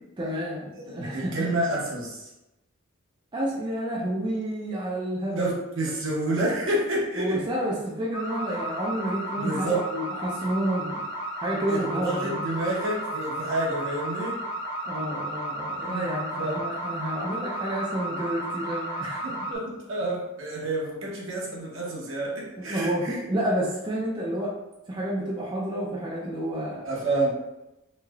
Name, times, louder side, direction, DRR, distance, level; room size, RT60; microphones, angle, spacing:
voice 1, 0.2-1.5 3.3-5.6 7.2-11.1 11.4-12.4 14.8-19.3 22.6-24.5 24.9-26.8, right 1 dB, 20° right, -4 dB, 0.4 m, -30 dB
voice 2, 1.0-2.3 5.3-7.4 9.4-9.8 11.7-14.3 15.8-16.1 16.4-16.6 19.0-23.2 26.8-27.3, right 1 dB, 65° right, -4 dB, 0.8 m, -29 dB
sound 1, 8.1-19.6, right 1 dB, 65° left, 1.1 m, -33 dB
3.1 x 2.7 x 2.3 m, 0.95 s
head